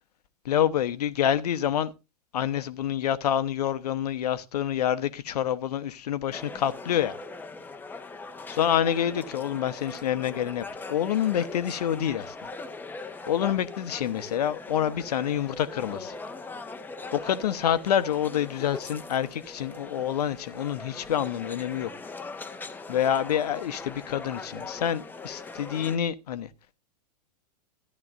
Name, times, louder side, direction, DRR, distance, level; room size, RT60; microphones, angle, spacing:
voice 1, 0.4-1.9 2.3-7.2 8.5-10.6 10.9-12.3 13.3-16.2 17.1-21.9 22.9-26.5, left 10 dB, 70° left, 1.0 m, -27 dB
sound 1, 6.3-26.0, left 3 dB, 10° left, 1.0 m, -41 dB
14.5 x 10.5 x 2.5 m
hypercardioid pair, 100°, 21 cm